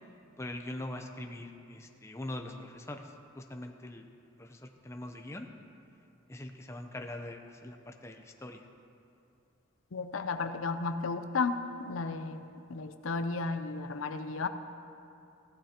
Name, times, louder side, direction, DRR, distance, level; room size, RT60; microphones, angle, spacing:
voice 1, 0.4-4.0 4.4-5.5 6.3-8.7, left 1 dB, 15° left, 4 dB, 0.6 m, -42 dB
voice 2, 9.9-12.4 12.7-14.5, left 4 dB, 80° left, 9 dB, 0.5 m, -33 dB
16.5 x 12.0 x 2.9 m, 2.6 s
head